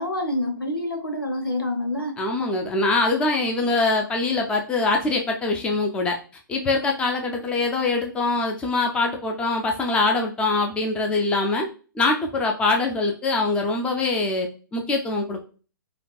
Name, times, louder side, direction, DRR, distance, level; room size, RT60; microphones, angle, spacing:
voice 1, 0.0-2.2, left 1 dB, 85° left, 4 dB, 1.0 m, -27 dB
voice 2, 2.2-6.2 6.5-11.7 11.9-15.5, left 3 dB, 10° left, 2 dB, 0.5 m, -23 dB
5.0 x 2.3 x 2.2 m, 0.36 s
figure-of-eight pair, 120°, 12 cm